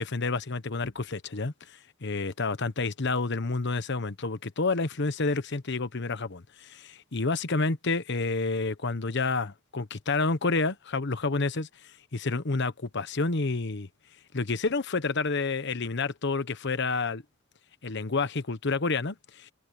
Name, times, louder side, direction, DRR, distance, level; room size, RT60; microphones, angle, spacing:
voice 1, 0.0-13.9 14.3-17.2 17.8-19.5, left 3 dB, 60° left, 1.1 m, -29 dB
head